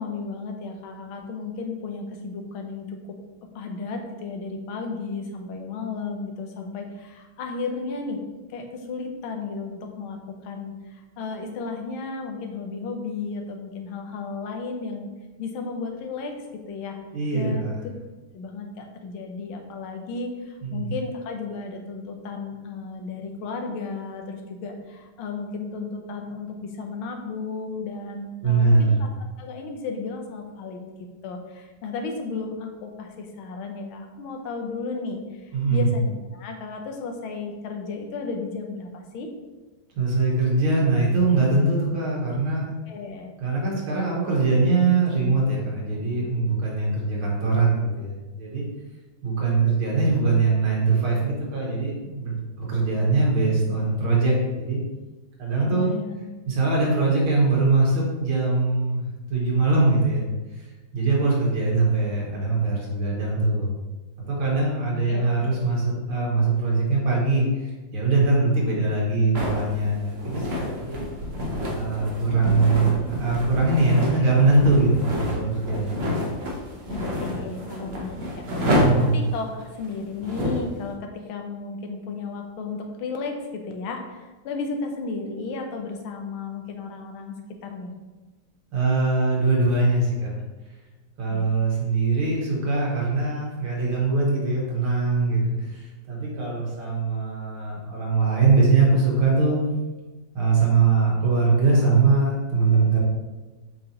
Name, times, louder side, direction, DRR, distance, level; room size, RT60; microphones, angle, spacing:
voice 1, 0.0-3.2 3.5-8.2 8.5-15.1 15.4-16.3 16.7-17.0 17.3-17.9 18.3-29.1 29.4-30.8 31.2-39.3 42.9-43.3 55.6-56.5 65.1-65.3 76.9-87.4 87.6-87.9 91.3-91.5, left 4 dB, 85° left, 3 dB, 1.7 m, -34 dB
voice 2, 17.1-17.7 20.6-20.9 28.4-29.0 35.5-35.9 40.0-42.7 43.4-48.6 49.2-54.8 55.4-55.9 56.5-59.0 59.3-60.2 60.6-60.7 60.9-63.7 64.3-71.0 71.7-76.0 78.6-79.2 88.7-90.3 91.2-99.6 100.3-103.0, right 3 dB, 90° right, -3 dB, 2.5 m, -22 dB
sound 1, 69.3-80.7, left 1 dB, 40° right, 0.9 m, -29 dB
7.4 x 5.3 x 3.0 m, 1.2 s
omnidirectional pair, 2.2 m